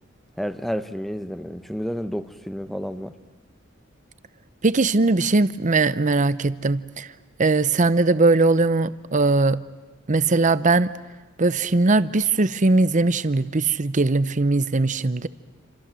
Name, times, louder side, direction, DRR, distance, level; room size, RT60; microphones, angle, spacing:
voice 1, 0.4-3.1, equal, ahead, 11 dB, 1.0 m, -30 dB
voice 2, 4.6-7.1 7.4-9.6 10.1-10.9 11.4-15.3, right 3 dB, 40° right, 15 dB, 0.8 m, -20 dB
28.0 x 27.0 x 7.7 m, 1.2 s
head